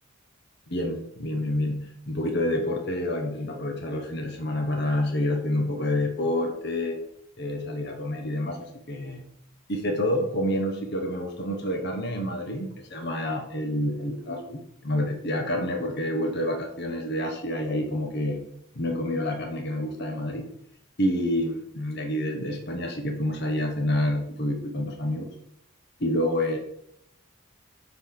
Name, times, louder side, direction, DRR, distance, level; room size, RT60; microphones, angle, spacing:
voice 1, 0.7-7.0 7.4-9.2 9.7-18.4 18.7-20.5 21.0-25.3 26.0-26.6, left 1 dB, 50° left, 2 dB, 1.1 m, -28 dB
8.5 x 4.1 x 5.8 m, 0.75 s
head